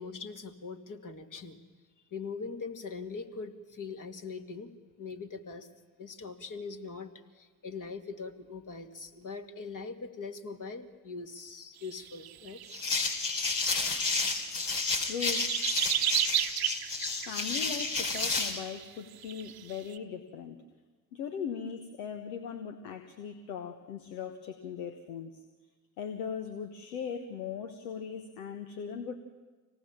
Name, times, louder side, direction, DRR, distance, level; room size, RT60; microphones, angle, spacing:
voice 1, 0.0-1.6 2.1-5.7 6.0-7.1 7.4-12.6, left 4 dB, 40° left, 5 dB, 2.3 m, -41 dB
sound 1, 11.8-13.2 13.4-14.5 14.8-20.0, right 12 dB, 50° right, 1.0 m, -34 dB
sound 2, 12.7-18.6, left 3 dB, 60° left, 3.3 m, -31 dB
voice 2, 15.0-15.5 17.3-20.6 21.1-25.4 26.0-29.2, left 7 dB, 80° left, 7 dB, 1.2 m, -39 dB
26.0 x 18.0 x 7.3 m, 1.4 s
hypercardioid pair, 45°, 46 cm